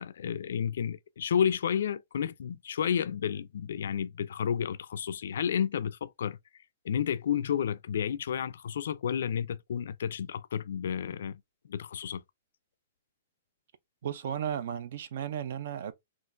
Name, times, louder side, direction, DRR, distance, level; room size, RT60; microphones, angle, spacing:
voice 1, 0.0-6.4 6.8-11.4 11.7-12.2, left 8 dB, 70° left, 0.3 m, -31 dB
voice 2, 14.0-15.9, right 9 dB, 55° right, 0.4 m, -34 dB
3.7 x 2.4 x 2.5 m
hypercardioid pair, 165°, 0 cm